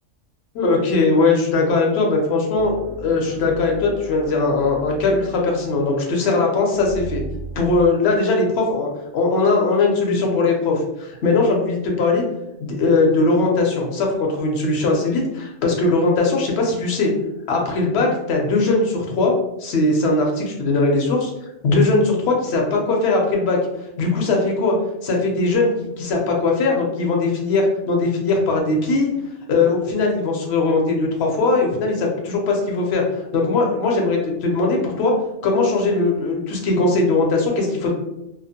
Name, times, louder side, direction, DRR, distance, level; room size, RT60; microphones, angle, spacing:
voice 1, 0.5-7.2 7.6-12.2 12.6-17.1 17.5-19.3 19.6-21.3 21.6-23.6 24.0-24.8 25.0-29.1 29.5-33.0 33.3-35.1 35.4-37.9, left 3 dB, 65° left, 0 dB, 0.8 m, -20 dB
sound 1, 2.5-7.9, right 1 dB, 60° right, 0.7 m, -37 dB
2.3 x 2.1 x 2.7 m, 0.88 s
omnidirectional pair, 1.2 m